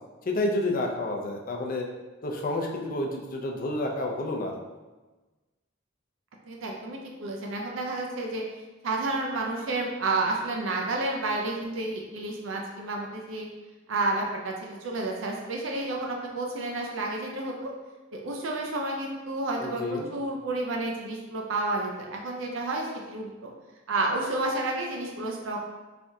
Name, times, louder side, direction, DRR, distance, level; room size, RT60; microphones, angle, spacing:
voice 1, 0.3-1.9 2.2-4.6 19.6-20.1, left 2 dB, 45° left, 1 dB, 0.5 m, -29 dB
voice 2, 6.5-8.5 8.8-13.5 13.9-17.7 18.1-23.5 23.9-25.6, right 2 dB, 85° right, 0 dB, 0.5 m, -30 dB
3.5 x 3.4 x 2.7 m, 1.2 s
head